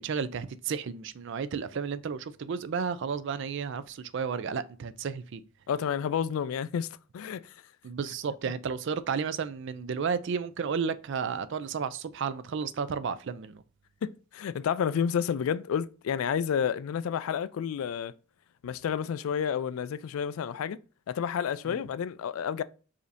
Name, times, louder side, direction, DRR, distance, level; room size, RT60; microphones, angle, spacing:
voice 1, 0.0-5.4 7.8-13.6 21.7-21.8, right 6 dB, 60° right, 0.4 m, -32 dB
voice 2, 5.7-6.9 7.1-7.4 14.0-18.1 18.6-20.8 21.1-22.6, left 8 dB, 80° left, 0.3 m, -30 dB
4.9 x 2.7 x 2.6 m
head